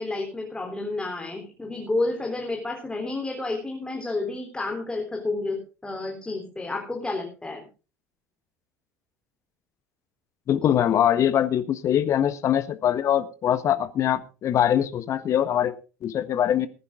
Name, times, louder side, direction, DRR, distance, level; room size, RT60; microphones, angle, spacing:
voice 1, 0.0-7.7, left 2 dB, 10° left, 3.8 m, -30 dB
voice 2, 10.5-15.7 16.0-16.7, left 10 dB, 40° left, 1.5 m, -23 dB
19.5 x 10.0 x 3.8 m
figure-of-eight pair, 65°, 8 cm